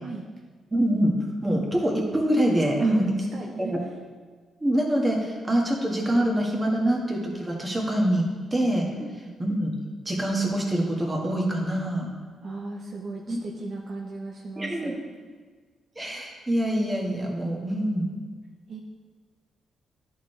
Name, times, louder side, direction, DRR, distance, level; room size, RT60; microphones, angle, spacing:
voice 1, 0.7-1.2 1.4-3.1 3.6-3.8 4.6-8.9 9.4-9.7 10.1-12.1 13.3-13.4 14.6-15.0 16.0-18.1, right 1 dB, 20° right, -1 dB, 1.7 m, -25 dB
voice 2, 2.8-3.9 9.0-9.4 12.4-15.0 18.7-18.8, right 3 dB, 55° right, 0 dB, 0.7 m, -37 dB
10.5 x 4.7 x 3.3 m, 1.5 s
supercardioid pair, 60°, 0 cm